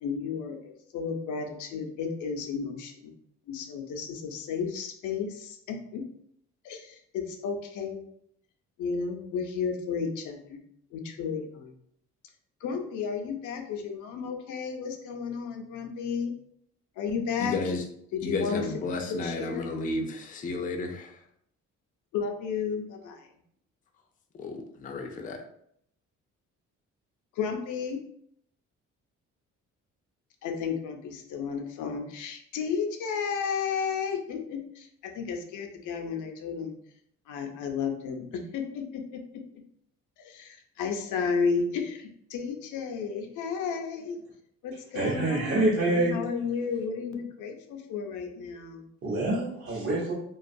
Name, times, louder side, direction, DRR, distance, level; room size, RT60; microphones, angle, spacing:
voice 1, 0.0-3.1 3.5-6.0 6.6-8.0 8.8-10.6 10.9-11.7 12.6-16.3 17.0-17.6 18.1-18.6 19.1-19.7 22.1-23.3 27.3-28.0 30.4-36.7 37.3-39.2 40.2-44.2 44.6-48.9, left 6 dB, 80° left, 4 dB, 0.5 m, -33 dB
voice 2, 17.4-17.8 18.2-21.2 24.4-25.4, left 3 dB, 30° left, 3 dB, 0.4 m, -32 dB
voice 3, 44.9-46.2 49.0-50.1, right 2 dB, 45° right, -5 dB, 0.7 m, -26 dB
2.4 x 2.3 x 2.5 m, 0.70 s
cardioid pair, 90°, 30 cm